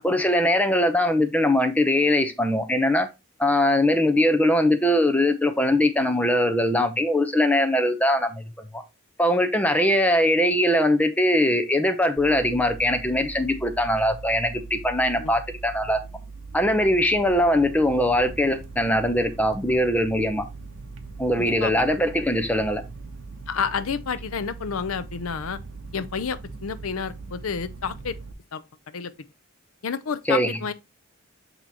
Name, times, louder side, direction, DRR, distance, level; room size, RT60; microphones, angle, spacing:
voice 1, 0.0-3.1 3.4-8.4 8.7-8.8 9.2-16.0 16.5-20.4 21.2-22.8 30.3-30.5, left 1 dB, 5° left, 0.7 m, -21 dB
sound 1, 12.2-28.3, right 3 dB, 65° right, 0.9 m, -40 dB
voice 2, 21.4-21.9 23.5-25.6 25.9-28.2 28.5-29.1 29.8-30.7, left 6 dB, 85° left, 0.6 m, -30 dB
7.9 x 3.0 x 4.1 m
head